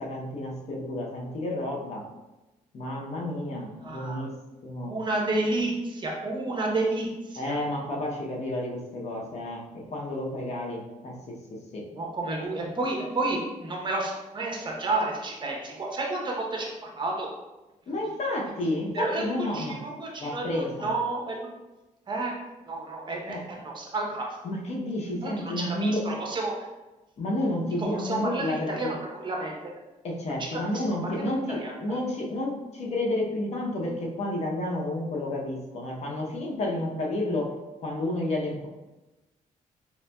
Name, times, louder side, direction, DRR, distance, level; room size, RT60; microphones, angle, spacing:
voice 1, 0.0-2.0 2.7-4.3 4.6-4.9 7.4-11.8 17.9-19.8 20.2-20.9 23.3-23.4 24.4-26.0 27.2-28.9 30.0-37.5 37.8-38.7, left 1 dB, 55° left, -2 dB, 0.7 m, -31 dB
voice 2, 3.8-4.2 4.8-7.6 11.9-17.3 18.9-19.2 19.5-21.5 22.1-22.3 22.7-23.4 23.6-24.3 25.2-26.5 27.9-28.9 29.2-29.7 30.7-30.8 31.2-31.3 31.6-31.7, right 2 dB, 35° right, -1 dB, 0.7 m, -30 dB
4.1 x 2.6 x 2.2 m, 1.1 s
cardioid pair, 110°, 14 cm